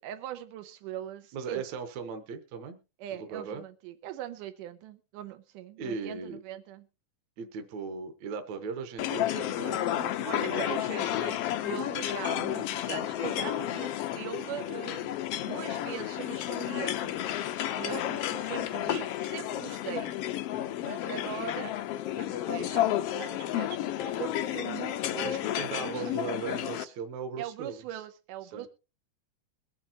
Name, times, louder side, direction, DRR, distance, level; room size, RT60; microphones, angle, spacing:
voice 1, 0.0-1.6 3.0-6.9 10.2-15.1 15.4-17.2 17.8-20.1 20.8-21.7 22.1-23.9 24.2-26.0 27.4-28.7, right 11 dB, 90° right, 9 dB, 2.5 m, -41 dB
voice 2, 1.3-2.8 3.1-3.6 5.8-6.4 7.4-10.9 20.5-20.7 25.2-27.8 28.5-28.7, right 5 dB, 65° right, 7 dB, 2.2 m, -38 dB
sound 1, 9.0-26.8, left 12 dB, 80° left, 1.4 m, -32 dB
22.5 x 8.9 x 2.9 m, 0.31 s
omnidirectional pair, 3.6 m